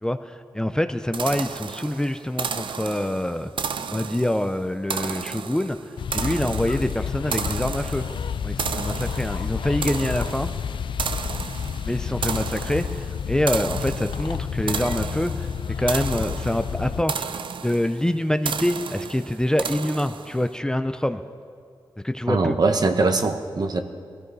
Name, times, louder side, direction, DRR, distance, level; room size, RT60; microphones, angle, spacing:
voice 1, 0.0-3.5 3.9-8.1 8.4-10.5 11.9-15.5 15.8-21.2 22.0-22.6, left 1 dB, 10° left, 8 dB, 0.5 m, -25 dB
sound 1, 1.1-20.5, right 6 dB, 80° right, 0.6 m, -33 dB
sound 2, 6.0-17.0, left 7 dB, 80° left, 0.4 m, -30 dB
voice 2, 22.3-23.8, right 3 dB, 55° right, 6 dB, 1.1 m, -21 dB
22.0 x 15.5 x 4.1 m, 2.3 s
wide cardioid pair, 110°, 8 cm